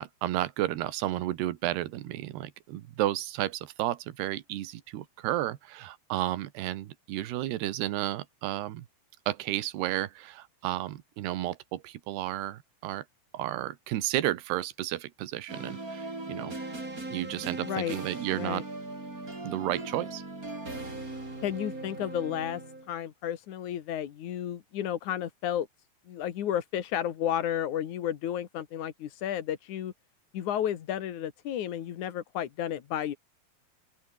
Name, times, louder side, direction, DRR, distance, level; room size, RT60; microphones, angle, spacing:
voice 1, 0.0-8.9 9.3-13.1 13.3-16.6 17.1-18.6 19.4-20.2, right 14 dB, 80° right, 3.4 m, -32 dB
sound 1, 15.5-22.9, right 2 dB, 20° right, 6.1 m, -39 dB
voice 2, 17.6-18.0 18.4-18.6 21.4-22.6 22.9-25.7 26.1-29.9 30.3-33.2, left 10 dB, 55° left, 2.6 m, -32 dB
omnidirectional pair, 4.7 m